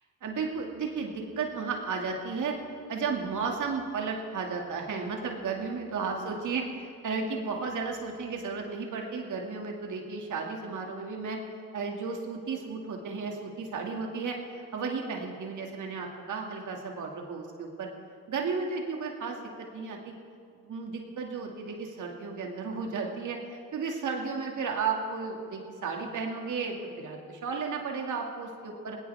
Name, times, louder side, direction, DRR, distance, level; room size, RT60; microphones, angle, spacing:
voice 1, 0.2-2.6 2.9-11.4 11.7-17.9 18.3-19.4 19.7-20.1 20.6-29.0, right 5 dB, 55° right, 1 dB, 2.4 m, -34 dB
18.0 x 17.5 x 3.6 m, 2.2 s
supercardioid pair, 70°, 36 cm